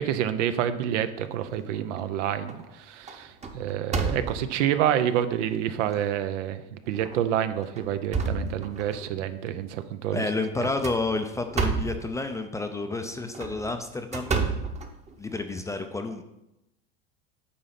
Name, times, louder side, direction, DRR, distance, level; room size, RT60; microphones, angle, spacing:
voice 1, 0.0-10.3, right 10 dB, 90° right, 11 dB, 0.8 m, -28 dB
sound 1, 1.4-2.0 2.5-2.7 3.1-4.7 5.3-5.4 5.9-6.0 6.9-7.2 7.6-9.1 10.6-12.1 13.2-15.4, right 4 dB, 20° right, 0.8 m, -30 dB
voice 2, 10.1-14.4 15.2-16.2, left 3 dB, 10° left, 7 dB, 0.3 m, -30 dB
8.6 x 4.1 x 5.8 m, 0.89 s
supercardioid pair, 130°, 36 cm